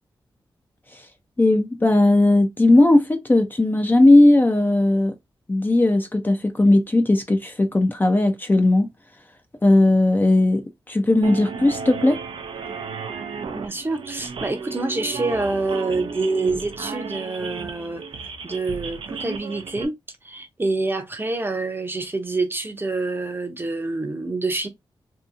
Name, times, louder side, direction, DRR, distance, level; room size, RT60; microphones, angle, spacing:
voice 1, 1.4-5.1 5.5-8.9 9.6-12.2, left 2 dB, 20° left, 0.4 m, -17 dB
sound 1, 11.2-19.9, right 5 dB, 75° right, 0.4 m, -34 dB
voice 2, 13.5-18.0 18.4-20.0 20.2-24.7, right 3 dB, 25° right, 0.6 m, -26 dB
2.7 x 2.5 x 2.4 m
cardioid pair, 60°, 9 cm